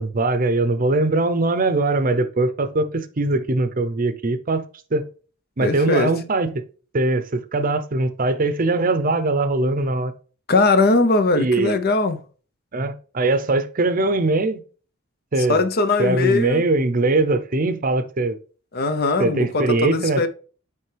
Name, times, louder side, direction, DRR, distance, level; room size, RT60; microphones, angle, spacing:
voice 1, 0.0-4.6 4.9-5.0 5.6-6.6 6.9-10.1 11.4-11.8 12.7-14.6 15.3-15.6 16.0-18.4 19.2-20.3, right 2 dB, 45° right, 0.6 m, -21 dB
voice 2, 5.6-6.1 10.5-12.2 15.5-16.6 18.7-20.3, left 3 dB, 50° left, 0.7 m, -20 dB
9.1 x 3.4 x 3.3 m
head